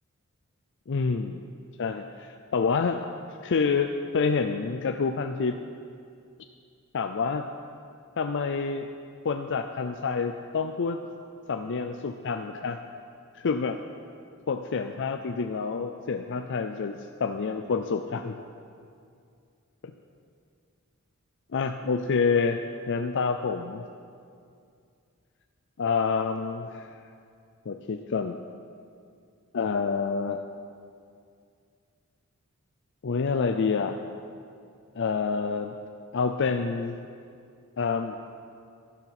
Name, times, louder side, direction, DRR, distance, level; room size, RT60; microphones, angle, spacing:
voice 1, 0.9-1.4 1.8-3.0 3.4-5.6 6.9-7.5 8.2-8.9 9.2-11.0 11.5-12.8 13.3-13.8 14.5-18.4 21.5-22.6 22.9-23.8 25.8-26.9 27.7-28.4 29.5-30.4 33.0-34.0 35.0-35.7 36.1-37.0 37.8-38.2, left 5 dB, 60° left, 6 dB, 0.5 m, -28 dB
12.5 x 10.5 x 6.0 m, 2.3 s
head